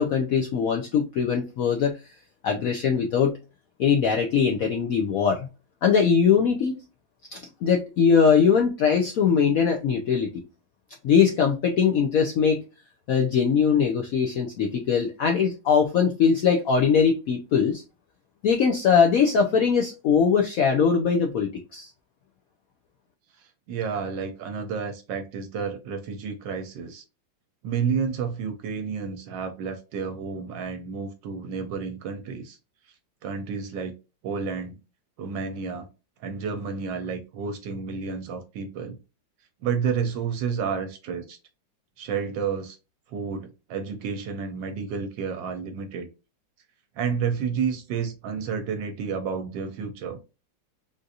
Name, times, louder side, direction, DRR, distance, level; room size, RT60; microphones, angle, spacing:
voice 1, 0.0-2.0 2.4-3.3 3.8-5.5 5.8-6.7 7.3-10.3 11.0-12.6 13.1-17.8 18.4-21.9, left 6 dB, 70° left, 0.8 m, -21 dB
voice 2, 23.3-27.0 27.6-32.6 33.2-33.9 34.2-34.8 35.2-35.9 36.2-39.0 39.6-41.4 42.0-42.8 43.1-46.1 47.0-50.2, right 6 dB, 80° right, 1.3 m, -30 dB
3.8 x 2.4 x 2.6 m
omnidirectional pair, 2.0 m